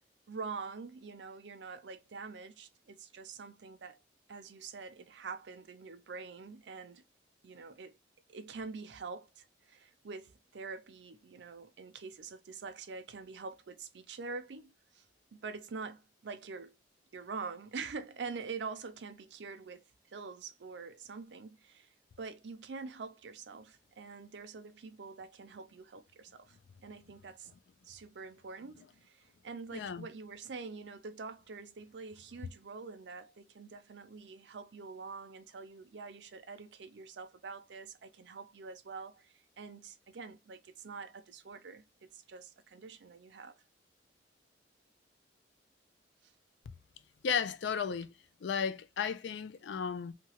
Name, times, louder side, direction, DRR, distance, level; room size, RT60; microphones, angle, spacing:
voice 1, 0.3-4.0 4.3-7.0 7.4-8.0 8.3-15.0 15.4-16.7 17.1-21.9 22.2-26.6 26.8-27.5 27.8-43.6 46.2-46.3, right 4 dB, 70° right, 0.5 m, -45 dB
voice 2, 29.7-30.1 47.2-48.1 48.4-50.1, left 6 dB, 75° left, 0.4 m, -34 dB
2.9 x 2.3 x 2.8 m
head